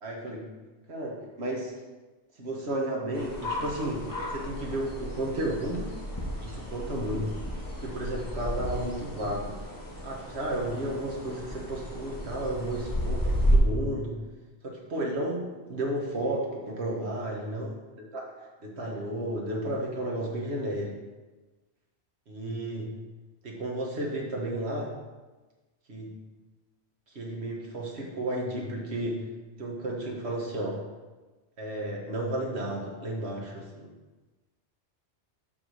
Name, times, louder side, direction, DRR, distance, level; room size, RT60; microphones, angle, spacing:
voice 1, 0.0-0.5 0.9-1.7 2.4-5.9 6.4-7.3 7.8-9.6 10.0-14.2 14.6-17.7 18.1-18.2 18.6-21.0 22.3-22.9 23.4-24.9 25.9-26.2 27.1-29.3 29.6-30.8 31.6-33.9, right 1 dB, 70° right, -1 dB, 1.6 m, -33 dB
sound 1, 3.1-13.6, equal, 20° left, 1.3 m, -32 dB
7.7 x 3.7 x 6.3 m, 1.2 s
omnidirectional pair, 1.2 m